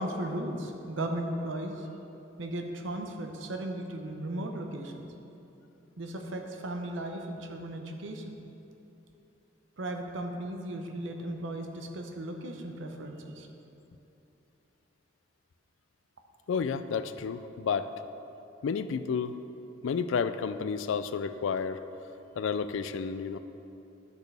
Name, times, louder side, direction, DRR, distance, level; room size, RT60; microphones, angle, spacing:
voice 1, 0.0-1.9 2.4-5.1 6.0-8.4 9.8-13.5, right 1 dB, 80° right, 4 dB, 0.7 m, -36 dB
voice 2, 16.5-17.9 18.6-19.4 19.8-21.8 22.4-23.4, left 6 dB, 80° left, 12 dB, 0.3 m, -31 dB
10.0 x 6.2 x 3.4 m, 2.9 s
head